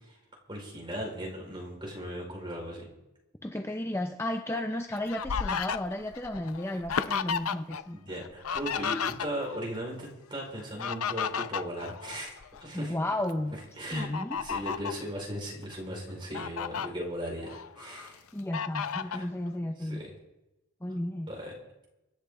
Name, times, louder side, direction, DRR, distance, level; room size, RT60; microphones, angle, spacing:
voice 1, 0.5-2.9 7.9-12.3 12.6-13.0 13.8-14.1 14.4-18.2 19.0-19.3 19.8-20.1 21.3-21.5, equal, 25° right, -2 dB, 4.8 m, -37 dB
voice 2, 3.4-8.0 12.7-13.6 13.9-14.4 18.3-20.0 20.8-21.3, left 1 dB, 10° left, 5 dB, 0.6 m, -33 dB
Fowl, 4.5-7.8 8.1-9.6 10.5-12.6 13.1-13.3 13.9-15.0 15.6-15.7 16.1-16.9 17.4-18.1 18.5-19.2, left 6 dB, 85° left, 0.7 m, -33 dB
24.5 x 10.5 x 3.8 m, 0.96 s
head